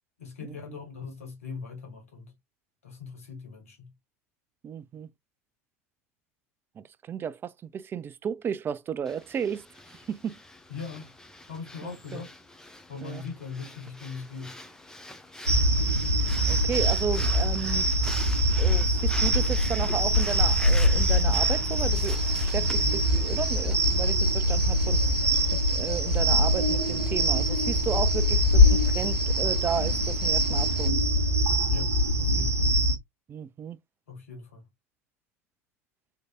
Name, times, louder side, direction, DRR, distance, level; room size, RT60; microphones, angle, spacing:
voice 1, 0.2-2.3 2.8-3.9 10.7-11.1 11.5-12.3 12.9-14.6 31.7-32.7 34.1-34.6, left 5 dB, 80° left, 1.5 m, -40 dB
voice 2, 4.6-5.1 6.8-9.6 10.1-10.4 11.8-12.2 13.0-13.2 16.5-17.9 18.6-25.0 25.5-31.1 33.3-33.8, right 7 dB, 30° right, 0.4 m, -34 dB
Breathing, 9.0-24.1, left 1 dB, 10° left, 0.9 m, -44 dB
sound 1, 15.5-33.0, equal, 90° right, 0.7 m, -23 dB
sound 2, 21.9-30.9, right 1 dB, 10° right, 1.1 m, -43 dB
3.8 x 3.2 x 2.2 m
figure-of-eight pair, 75°, 8 cm